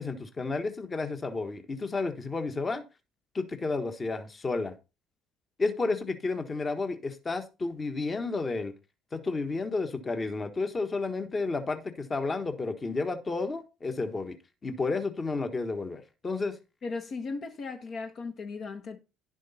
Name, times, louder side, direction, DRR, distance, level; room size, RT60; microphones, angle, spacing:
voice 1, 0.0-2.8 3.3-4.7 5.6-8.7 9.1-14.4 14.6-16.5, left 3 dB, 30° left, 1.4 m, -31 dB
voice 2, 16.8-19.0, left 4 dB, 50° left, 1.2 m, -37 dB
10.5 x 6.3 x 4.2 m
supercardioid pair, 75°, 0 cm